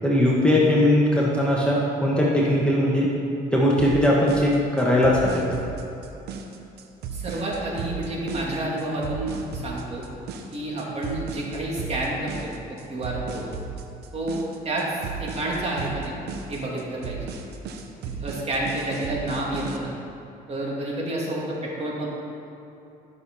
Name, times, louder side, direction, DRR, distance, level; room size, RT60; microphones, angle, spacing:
voice 1, 0.0-3.1 3.5-5.4, left 1 dB, 5° left, -5 dB, 1.5 m, -20 dB
sound 1, 3.8-19.8, right 5 dB, 75° right, 1.0 m, -35 dB
voice 2, 7.1-10.0 10.5-12.5 12.9-13.5 14.1-16.1 16.5-17.2 18.2-19.9 20.5-22.1, right 1 dB, 40° right, -4 dB, 2.8 m, -29 dB
13.0 x 6.6 x 5.7 m, 2.8 s
cardioid pair, 110°, 17 cm